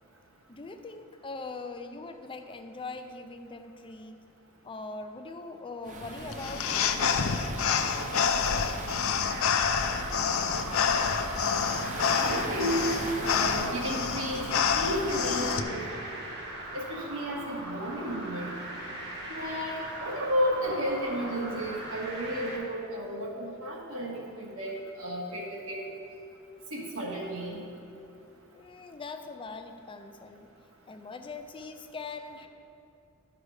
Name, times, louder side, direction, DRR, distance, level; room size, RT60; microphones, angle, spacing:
voice 1, 0.5-4.2 4.6-7.5 28.5-30.5 30.9-32.5, left 3 dB, 25° left, 7 dB, 0.5 m, -41 dB
Waves surf, 5.8-15.6, right 2 dB, 35° right, 0.8 m, -40 dB
sound 1, 6.3-15.6, left 6 dB, 75° left, 0.5 m, -28 dB
sound 2, 9.2-22.6, right 1 dB, 55° right, 1.8 m, -40 dB
voice 2, 12.2-12.9 13.2-14.4 14.8-16.0 16.7-18.5 19.3-25.8 26.7-27.6, equal, 70° right, -2 dB, 1.8 m, -32 dB
12.5 x 4.9 x 4.8 m, 2.6 s
head